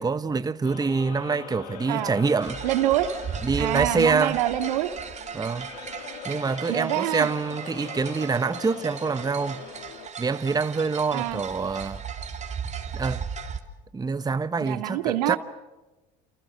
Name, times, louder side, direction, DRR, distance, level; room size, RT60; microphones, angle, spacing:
voice 1, 0.0-2.6 3.4-4.4 5.3-5.7 6.2-9.7 10.2-12.0 12.9-13.2 13.9-15.4, right 4 dB, 20° right, 1.1 m, -26 dB
sound 1, 0.6-10.1, left 9 dB, 85° left, 2.6 m, -42 dB
sound 2, 2.4-13.6, right 6 dB, 35° right, 3.5 m, -37 dB
voice 2, 2.6-3.1 3.6-4.9 6.7-7.3 11.1-11.4 14.6-15.4, right 14 dB, 80° right, 2.3 m, -25 dB
29.5 x 28.0 x 6.3 m
hypercardioid pair, 80°, 21 cm